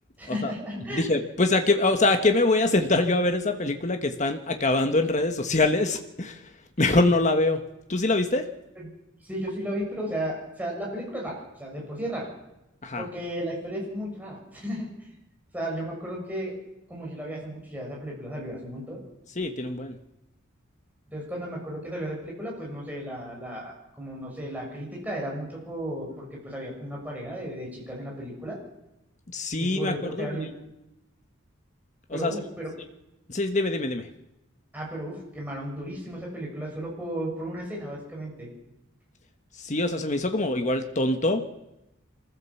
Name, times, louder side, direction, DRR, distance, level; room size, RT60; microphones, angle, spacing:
voice 1, 0.2-1.1 8.8-8.9 9.2-12.3 13.0-15.1 15.5-16.5 16.9-19.0 21.1-28.6 29.6-30.5 32.1-32.7 34.7-38.5, equal, 10° right, -2 dB, 7.1 m, -34 dB
voice 2, 0.9-6.4 6.8-7.6 7.9-8.5 12.8-13.0 19.4-20.0 29.3-30.4 32.1-32.3 33.3-34.1 39.6-41.5, left 2 dB, 35° left, 6 dB, 1.4 m, -24 dB
24.5 x 15.0 x 7.2 m, 0.90 s
head